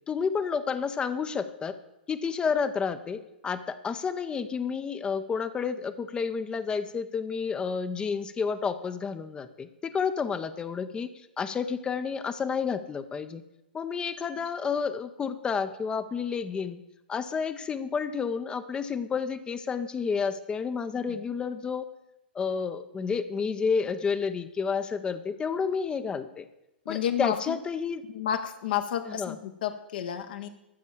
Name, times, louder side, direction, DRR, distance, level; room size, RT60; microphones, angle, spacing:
voice 1, 0.1-1.8 2.1-11.1 11.4-13.4 13.7-16.8 17.1-21.8 22.3-26.5 26.9-28.0 29.1-29.4, left 6 dB, 15° left, 11 dB, 0.6 m, -30 dB
voice 2, 26.9-27.6 28.1-30.5, left 10 dB, 60° left, 7 dB, 0.9 m, -31 dB
13.5 x 6.3 x 7.1 m, 0.90 s
figure-of-eight pair, 110°, 6 cm